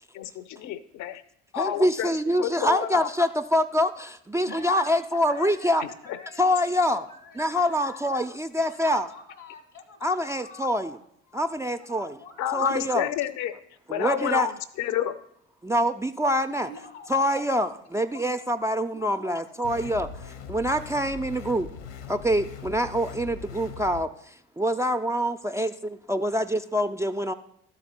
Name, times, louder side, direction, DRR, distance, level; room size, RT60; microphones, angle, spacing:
voice 1, 0.1-1.2 1.5-3.1 5.8-6.2 12.4-13.5 13.9-15.2, left 11 dB, 50° left, 14 dB, 0.6 m, -30 dB
voice 2, 1.6-5.8 6.4-7.1 7.4-9.1 10.0-11.0 11.3-12.2 12.5-13.1 13.9-14.5 15.6-16.7 17.1-20.1 20.5-21.7 22.1-27.3, equal, 10° right, 6 dB, 0.3 m, -25 dB
voice 3, 4.5-8.1 8.5-11.0 11.8-12.7 16.5-17.4 18.0-18.3 18.9-19.9 20.2-20.3, left 4 dB, 85° left, 7 dB, 1.5 m, -47 dB
sound 1, 19.6-24.0, left 6 dB, 70° left, 0.9 m, -40 dB
12.5 x 4.1 x 4.3 m, 0.74 s
figure-of-eight pair, 55°, 36 cm